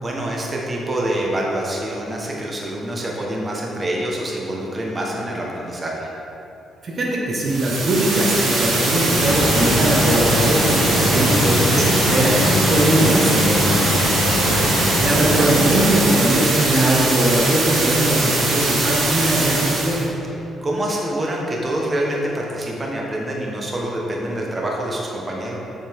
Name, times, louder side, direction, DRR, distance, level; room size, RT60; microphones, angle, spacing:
voice 1, 0.0-6.1 14.4-14.7 20.6-25.6, right 1 dB, 30° right, -2 dB, 1.3 m, -26 dB
voice 2, 6.8-14.0 15.0-20.1, right 1 dB, 45° right, -3 dB, 1.8 m, -20 dB
sound 1, 7.4-20.1, right 2 dB, 75° right, 1.8 m, -22 dB
sound 2, 9.1-16.0, left 1 dB, 70° left, 1.8 m, -22 dB
7.7 x 7.2 x 3.7 m, 3.0 s
cardioid pair, 90°, 0 cm